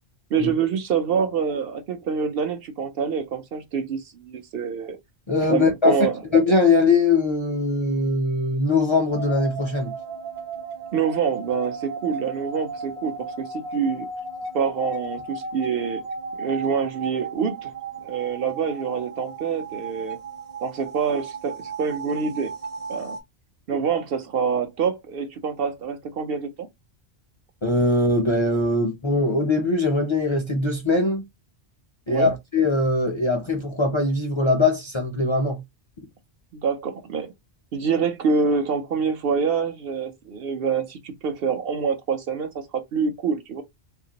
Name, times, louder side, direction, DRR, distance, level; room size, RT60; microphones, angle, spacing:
voice 1, 0.3-5.0 5.5-6.2 10.9-14.1 14.5-16.0 16.4-17.7 18.0-20.2 20.6-22.5 22.9-23.2 23.7-26.7 32.1-32.3 36.5-37.3 37.7-43.6, right 6 dB, 65° right, 0.8 m, -26 dB
voice 2, 5.3-6.0 6.3-9.9 27.6-31.2 32.1-35.6, left 3 dB, 40° left, 0.5 m, -21 dB
sound 1, 9.1-23.2, right 4 dB, 45° right, 1.1 m, -35 dB
2.8 x 2.6 x 2.7 m
omnidirectional pair, 1.1 m